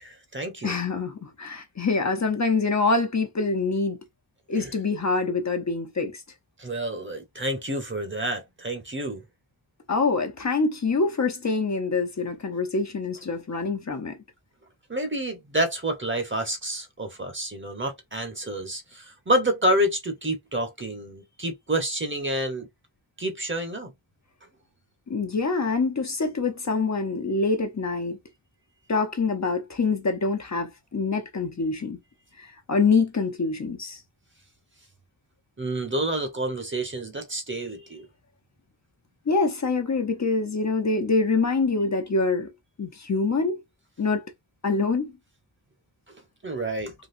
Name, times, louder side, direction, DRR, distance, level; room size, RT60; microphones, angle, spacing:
voice 1, 0.0-0.8 4.5-4.7 6.6-9.2 14.9-22.7 23.2-23.9 35.6-38.0 46.4-46.9, right 1 dB, 30° right, 1.1 m, -28 dB
voice 2, 0.6-4.0 4.5-6.2 9.9-14.2 25.1-28.2 28.9-32.0 32.4-34.0 39.3-42.5 42.8-43.6 44.0-44.2 44.6-45.1, left 4 dB, 40° left, 0.8 m, -25 dB
3.9 x 2.3 x 2.6 m
cardioid pair, 60°, 41 cm